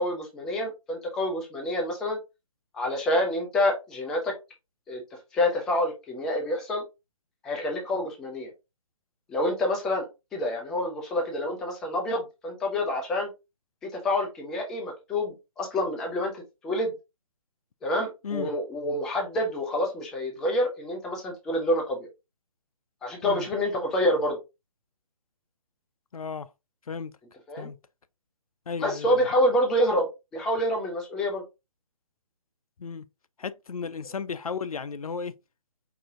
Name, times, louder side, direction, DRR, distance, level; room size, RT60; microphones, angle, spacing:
voice 1, 0.0-2.2 2.7-4.3 4.9-5.0 5.3-6.8 7.4-8.5 9.3-13.3 13.8-16.9 17.8-22.1 23.0-24.4 27.5-27.7 28.8-30.1 30.3-31.4, left 1 dB, 5° left, 0.3 m, -27 dB
voice 2, 26.1-26.5 26.9-27.1 27.6-27.8 28.7-29.3 32.8-33.0 33.4-35.3, left 5 dB, 80° left, 0.5 m, -34 dB
4.9 x 2.6 x 3.5 m
figure-of-eight pair, 145°, 18 cm